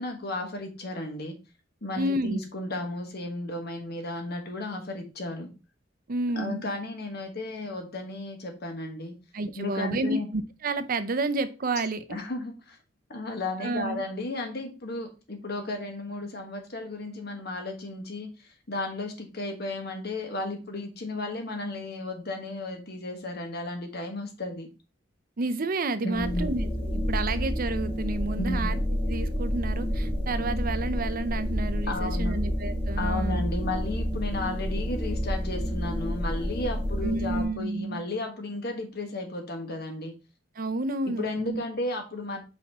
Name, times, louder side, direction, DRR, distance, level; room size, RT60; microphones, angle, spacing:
voice 1, 0.0-1.3 1.8-5.5 6.3-9.1 9.5-10.3 12.1-12.8 13.1-24.7 26.0-26.5 28.4-28.7 31.9-32.4 33.0-40.1 41.2-42.4, left 2 dB, 55° left, 1.4 m, -34 dB
voice 2, 2.0-2.4 6.1-6.6 9.3-12.0 13.6-14.0 25.4-28.8 29.1-33.4 37.0-38.0 40.6-41.6, right 2 dB, 50° right, 0.6 m, -30 dB
sound 1, 26.1-37.5, equal, 35° left, 2.0 m, -29 dB
5.6 x 4.3 x 4.1 m
head